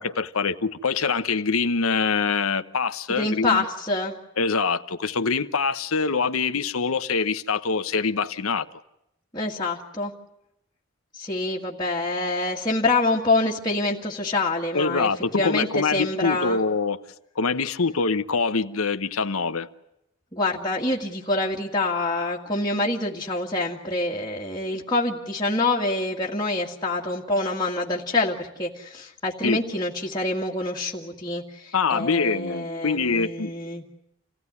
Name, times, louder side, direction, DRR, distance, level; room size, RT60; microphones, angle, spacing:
voice 1, 0.0-3.6 4.4-8.7 14.7-17.0 17.4-19.7 29.4-29.6 31.7-33.5, left 4 dB, 90° left, 1.0 m, -24 dB
voice 2, 3.1-4.2 9.3-10.1 11.1-15.1 15.4-16.6 20.3-33.8, left 2 dB, 20° left, 2.0 m, -26 dB
28.0 x 16.5 x 9.7 m
head